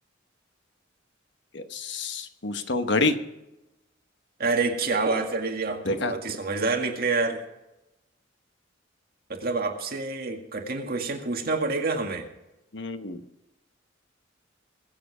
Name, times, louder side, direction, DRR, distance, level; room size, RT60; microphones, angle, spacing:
voice 1, 1.5-3.1 5.8-6.1 12.7-13.2, left 3 dB, 65° left, 8 dB, 1.1 m, -27 dB
voice 2, 4.4-7.4 9.3-12.3, right 3 dB, 50° right, 3 dB, 2.0 m, -27 dB
22.0 x 7.8 x 4.9 m, 0.95 s
head